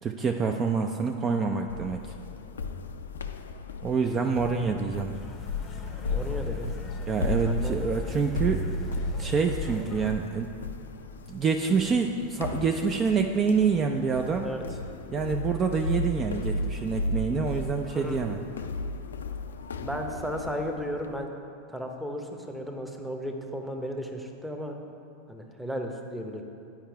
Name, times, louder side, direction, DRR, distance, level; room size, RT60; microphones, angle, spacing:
voice 1, 0.0-2.0 3.8-5.1 7.1-8.7 9.2-10.5 11.3-14.5 15.1-18.4, right 5 dB, 30° right, 4 dB, 0.4 m, -27 dB
sound 1, 1.7-21.2, left 2 dB, 85° left, 0.4 m, -34 dB
sound 2, 4.0-9.6, equal, 70° right, 1.3 m, -49 dB
sound 3, 5.1-10.1, left 6 dB, 30° left, 0.6 m, -41 dB
voice 2, 6.1-6.7 7.4-7.8 14.4-14.6 17.9-18.2 19.8-21.3 21.7-24.7 25.3-26.4, equal, 5° right, 3 dB, 0.8 m, -34 dB
8.9 x 4.6 x 4.7 m, 2.6 s
hypercardioid pair, 100°, 0 cm